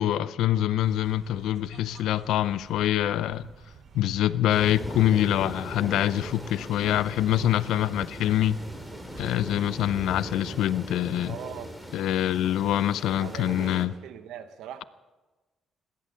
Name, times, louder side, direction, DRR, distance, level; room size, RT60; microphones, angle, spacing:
voice 1, 0.0-3.5 3.9-8.6 9.2-11.4 11.9-13.9, left 12 dB, 85° left, 0.5 m, -25 dB
sound 1, 0.8-10.2, right 6 dB, 60° right, 1.1 m, -51 dB
sound 2, 4.5-13.9, equal, ahead, 2.6 m, -39 dB
voice 2, 11.2-11.8 13.2-14.8, right 9 dB, 85° right, 1.0 m, -40 dB
17.5 x 11.5 x 6.7 m
cardioid pair, 90°, 0 cm